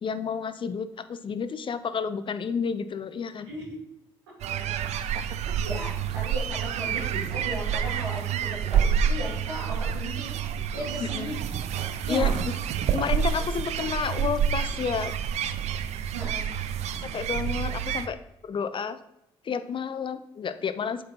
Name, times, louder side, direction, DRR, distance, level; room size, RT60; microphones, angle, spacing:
voice 1, 0.0-3.5 11.0-11.3 12.1-12.3 12.9-15.1 17.0-18.2 18.4-19.0 19.4-21.0, left 6 dB, 40° left, 12 dB, 0.6 m, -30 dB
voice 2, 3.5-3.8 5.5-10.4 10.7-11.4 12.0-12.4 16.1-16.4, right 1 dB, 85° right, -9 dB, 1.7 m, -36 dB
sound 1, 4.4-18.1, right 8 dB, 60° right, 0.5 m, -28 dB
7.5 x 5.5 x 2.8 m, 0.84 s
figure-of-eight pair, 40°, 13 cm